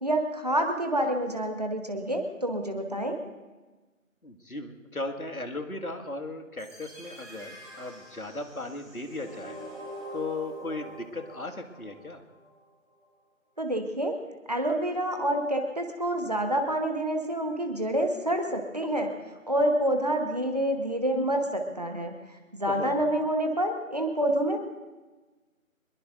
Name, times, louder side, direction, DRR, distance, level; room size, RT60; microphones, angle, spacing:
voice 1, 0.0-3.2 13.6-14.2 14.5-19.1 19.5-22.1 22.5-24.6, right 1 dB, 30° right, 4 dB, 1.2 m, -27 dB
voice 2, 4.2-9.6 10.1-12.2 22.6-22.9, left 2 dB, 90° left, 5 dB, 2.1 m, -37 dB
sound 1, 6.6-12.6, equal, 10° right, 2.5 m, -45 dB
23.5 x 21.5 x 2.6 m, 1.2 s
figure-of-eight pair, 165°, 42 cm